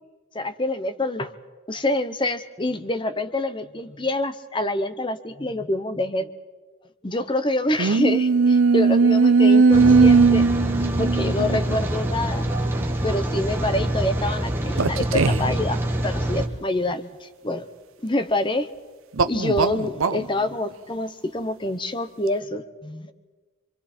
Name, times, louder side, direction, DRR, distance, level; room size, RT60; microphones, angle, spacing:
voice 1, 0.3-1.3 1.7-6.3 7.0-10.5 11.0-12.4 13.0-17.6 18.0-18.7 19.2-23.1, left 1 dB, 25° left, 11 dB, 0.9 m, -26 dB
sound 1, 7.8-11.8 12.7-12.8 14.8-15.6 19.1-20.2, right 4 dB, 75° right, 0.7 m, -18 dB
Rain, 9.7-16.5, right 1 dB, 10° right, 1.5 m, -25 dB
26.5 x 24.5 x 4.4 m, 1.3 s
head